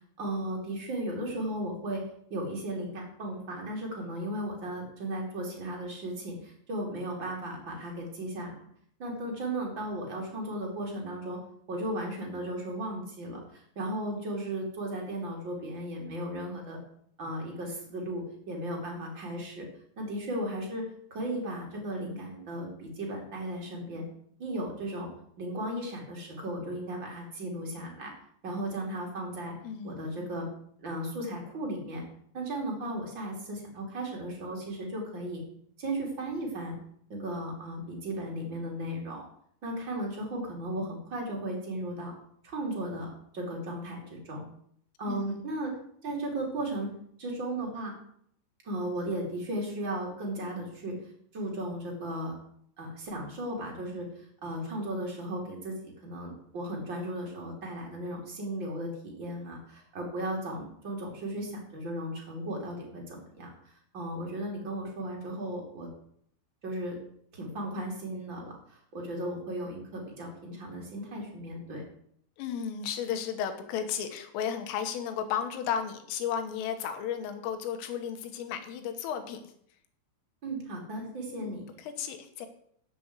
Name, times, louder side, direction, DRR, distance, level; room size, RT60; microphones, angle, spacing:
voice 1, 0.2-2.0 2.3-8.5 9.0-11.4 11.7-16.8 17.2-19.7 20.0-24.0 24.4-25.1 25.4-28.1 28.4-29.5 29.8-30.5 30.8-32.0 32.3-35.4 35.8-36.7 37.1-39.3 39.6-42.1 42.4-44.5 45.0-45.7 46.0-46.9 47.2-47.9 48.6-51.0 51.3-52.3 52.8-65.9 66.6-67.0 67.3-71.8 80.4-81.6, right 1 dB, 30° right, -1 dB, 2.5 m, -35 dB
voice 2, 29.6-30.3 45.1-45.4 72.4-79.5 81.3-82.5, left 8 dB, 85° left, 7 dB, 3.8 m, -34 dB
7.8 x 7.6 x 8.1 m, 0.66 s
omnidirectional pair, 5.7 m